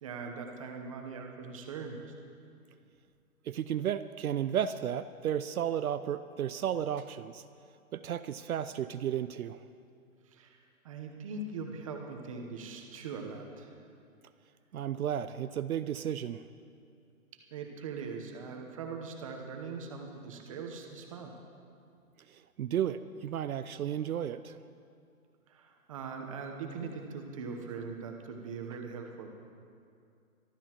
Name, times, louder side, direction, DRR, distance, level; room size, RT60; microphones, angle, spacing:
voice 1, 0.0-2.1 10.2-13.7 17.5-21.3 25.5-29.3, right 4 dB, 25° right, 3 dB, 1.0 m, -41 dB
voice 2, 3.4-7.4 7.9-9.6 14.7-16.5 22.3-24.6, right 9 dB, 70° right, 12 dB, 0.6 m, -33 dB
24.5 x 12.0 x 3.0 m, 2.4 s
hypercardioid pair, 165°, 44 cm